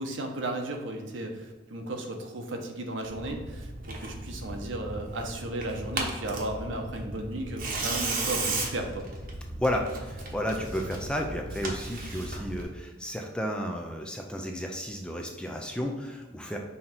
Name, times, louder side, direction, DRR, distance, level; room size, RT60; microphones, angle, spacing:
voice 1, 0.0-9.1, right 1 dB, 75° right, 3 dB, 0.9 m, -35 dB
Tearing, 3.0-12.6, right 3 dB, 45° right, 1.0 m, -35 dB
voice 2, 9.6-16.6, equal, 5° left, 2 dB, 0.5 m, -32 dB
5.7 x 3.8 x 4.4 m, 1.3 s
head